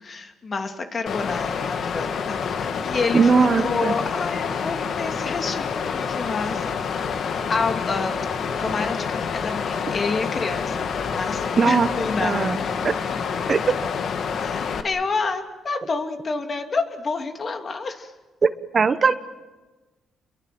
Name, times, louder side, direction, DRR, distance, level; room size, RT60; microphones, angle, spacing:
voice 1, 0.0-6.9 7.5-8.2 8.6-12.7 14.4-18.1, left 4 dB, 40° left, 5 dB, 2.8 m, -29 dB
Water, 1.1-14.8, left 6 dB, 60° left, 1.9 m, -27 dB
voice 2, 3.1-3.9 11.6-11.9 12.2-12.9 13.5-13.6 18.4-19.1, right 5 dB, 40° right, 11 dB, 1.2 m, -20 dB
29.0 x 23.0 x 7.9 m, 1.2 s
cardioid pair, 90°, 0 cm